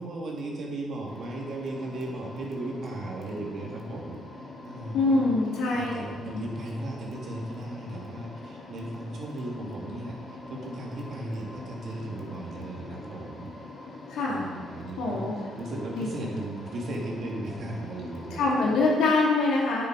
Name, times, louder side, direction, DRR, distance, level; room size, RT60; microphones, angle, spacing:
voice 1, 0.0-5.3 5.7-13.5 14.3-18.4, right 1 dB, 60° right, -1 dB, 2.3 m, -36 dB
sound 1, 1.1-19.1, left 2 dB, 45° left, 3.0 m, -43 dB
voice 2, 4.9-5.9 6.3-6.4 14.1-14.5 15.0-15.4 15.9-16.1 18.3-19.9, left 3 dB, 90° left, -4 dB, 2.7 m, -24 dB
9.4 x 7.6 x 4.9 m, 1.5 s
cardioid pair, 90°, 0 cm